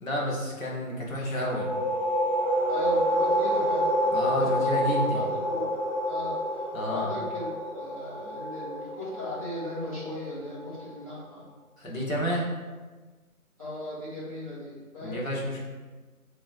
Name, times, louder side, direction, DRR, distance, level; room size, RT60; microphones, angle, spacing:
voice 1, 0.0-1.7 4.1-5.3 6.7-7.1 11.8-12.5 15.0-15.7, equal, 60° left, -4 dB, 1.1 m, -30 dB
sound 1, 1.3-10.7, equal, 25° right, 1.1 m, -28 dB
voice 2, 2.7-4.5 4.8-4.9 5.1-5.7 6.1-6.4 6.8-11.4 13.6-15.2, left 1 dB, 25° left, -11 dB, 1.1 m, -37 dB
3.0 x 3.0 x 3.8 m, 1.3 s
figure-of-eight pair, 165°, 44 cm